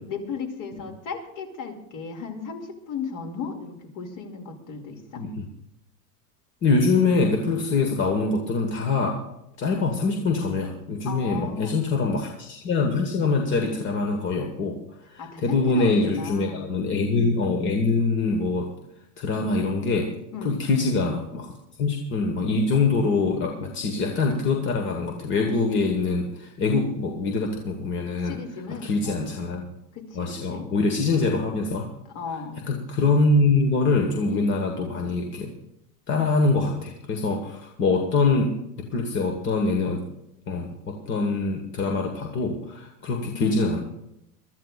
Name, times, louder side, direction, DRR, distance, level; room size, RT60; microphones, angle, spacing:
voice 1, 0.1-5.2 11.0-11.8 15.2-16.7 20.3-20.6 28.2-29.3 29.9-30.6 32.1-32.6 43.1-43.7, left 5 dB, 40° left, 3 dB, 2.5 m, -36 dB
voice 2, 6.6-9.2 9.6-14.8 15.1-18.7 19.2-20.1 20.4-21.5 21.8-28.4 28.7-29.7 30.1-31.9 32.7-35.5 36.1-40.0 40.5-43.8, left 3 dB, 25° left, 3 dB, 1.4 m, -24 dB
23.0 x 13.0 x 2.4 m, 0.83 s
supercardioid pair, 140°, 47 cm